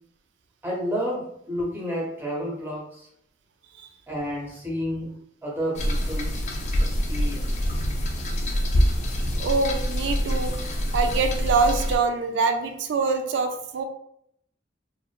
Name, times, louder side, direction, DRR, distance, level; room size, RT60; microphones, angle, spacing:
voice 1, 0.6-3.1 4.1-5.1 5.4-6.4 6.9-7.8, equal, 10° right, -4 dB, 0.7 m, -31 dB
sound 1, 5.7-12.0, equal, 35° left, 0.3 m, -25 dB
voice 2, 9.4-13.8, right 4 dB, 70° right, 6 dB, 0.3 m, -25 dB
3.0 x 2.0 x 2.2 m, 0.72 s
head